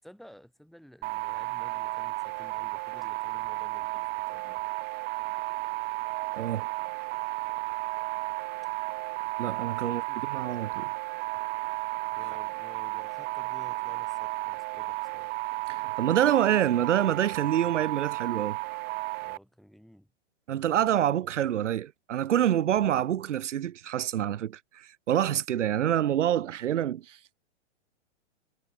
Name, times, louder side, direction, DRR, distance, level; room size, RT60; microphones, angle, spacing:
voice 1, 0.0-4.6 9.8-10.2 12.1-15.3 19.2-20.1, equal, ahead, 7.3 m, -53 dB
sound 1, 1.0-19.4, right 25 dB, 25° right, 0.7 m, -33 dB
voice 2, 6.4-6.7 9.4-10.0 10.3-10.9 15.7-18.6 20.5-27.3, right 11 dB, 85° right, 0.8 m, -27 dB
hypercardioid pair, 130°, 35 cm